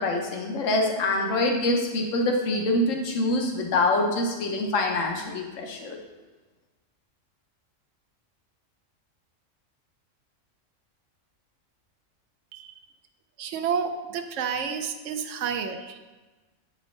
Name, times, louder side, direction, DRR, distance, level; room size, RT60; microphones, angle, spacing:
voice 1, 0.0-6.0, left 2 dB, 80° left, 2 dB, 1.1 m, -25 dB
voice 2, 13.4-16.0, right 6 dB, 75° right, 7 dB, 0.9 m, -30 dB
8.0 x 5.2 x 3.1 m, 1.2 s
omnidirectional pair, 1.3 m